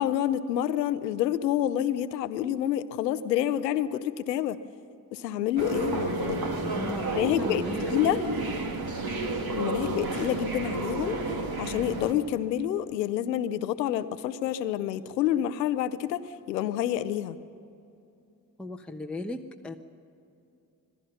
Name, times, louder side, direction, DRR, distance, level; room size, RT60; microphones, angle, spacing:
voice 1, 0.0-4.6 5.1-6.5 7.1-8.2 9.6-11.2 11.6-17.4, left 11 dB, 85° left, 14 dB, 0.8 m, -28 dB
sound 1, 5.6-12.1, right 2 dB, 45° right, 2.7 m, -31 dB
voice 2, 6.6-8.7 18.6-19.7, left 1 dB, ahead, 2 dB, 1.2 m, -37 dB
26.5 x 20.0 x 5.8 m, 2.6 s
hypercardioid pair, 45°, 48 cm